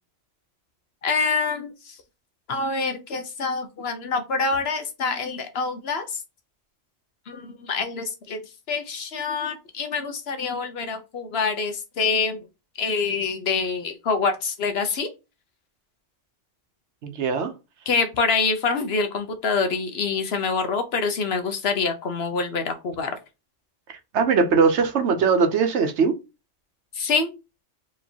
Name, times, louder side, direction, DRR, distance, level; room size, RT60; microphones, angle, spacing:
voice 1, 1.0-2.0 2.5-6.2 7.3-8.4 8.7-12.4 12.8-15.1 17.9-23.2 26.9-27.3, left 4 dB, 60° left, 1.0 m, -26 dB
voice 2, 17.0-17.5 23.9-26.2, right 5 dB, 70° right, 1.1 m, -21 dB
4.6 x 3.2 x 2.8 m
omnidirectional pair, 1.3 m